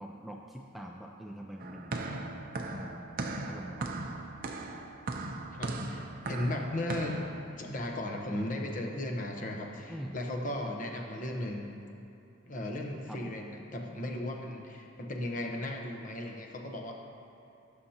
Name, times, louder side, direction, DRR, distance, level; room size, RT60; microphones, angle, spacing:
voice 1, 0.0-4.2 9.9-10.2 13.1-13.4, equal, ahead, 0 dB, 0.3 m, -45 dB
sound 1, 1.6-7.4, right 2 dB, 45° right, 0.6 m, -38 dB
voice 2, 5.5-7.2 7.6-11.7 12.5-16.9, left 1 dB, 40° left, 1 dB, 0.9 m, -36 dB
17.0 x 6.5 x 2.9 m, 2.8 s
head